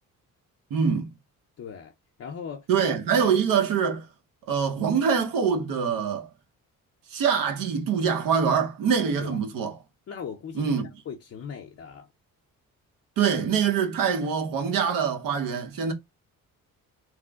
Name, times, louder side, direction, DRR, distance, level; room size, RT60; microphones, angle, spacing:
voice 1, 0.7-1.1 2.7-4.1 4.5-6.3 7.1-9.7 10.5-10.9 13.2-15.9, right 6 dB, 80° right, 0.9 m, -24 dB
voice 2, 1.6-1.9 2.2-2.7 9.2-9.4 10.1-10.7 11.1-12.1, left 7 dB, 45° left, 0.6 m, -38 dB
3.0 x 2.1 x 3.5 m
cardioid pair, 105°, 33 cm